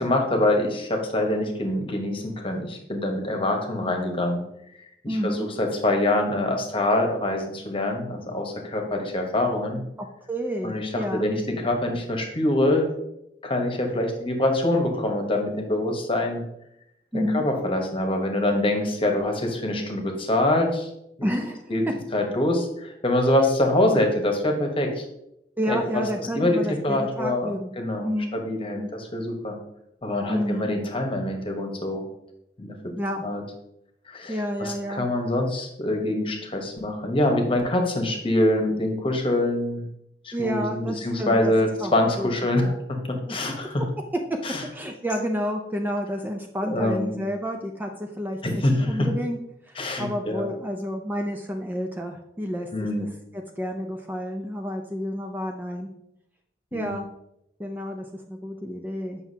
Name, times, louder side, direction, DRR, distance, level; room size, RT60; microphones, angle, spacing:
voice 1, 0.0-4.4 5.0-9.8 10.6-12.9 13.4-16.4 17.1-20.9 21.2-21.3 21.7-21.8 22.1-25.0 25.7-25.8 26.3-29.6 30.0-32.0 32.6-32.9 33.2-33.4 34.1-39.8 40.2-43.8 44.4-44.6 46.6-47.2 48.4-49.1 49.8-50.4 52.7-53.1 56.7-56.9, left 1 dB, 30° left, 3 dB, 1.1 m, -25 dB
voice 2, 5.1-5.5 10.0-11.3 17.1-17.5 21.2-21.7 25.6-27.8 28.0-28.4 28.8-28.9 30.3-30.7 33.0-33.2 34.3-35.1 40.3-41.5 41.8-42.3 42.5-42.7 43.3-43.4 44.7-49.4 49.7-52.7 53.0-55.9 56.7-57.1 57.6-59.2, equal, 10° right, 3 dB, 0.5 m, -30 dB
7.8 x 5.7 x 2.8 m, 0.79 s
head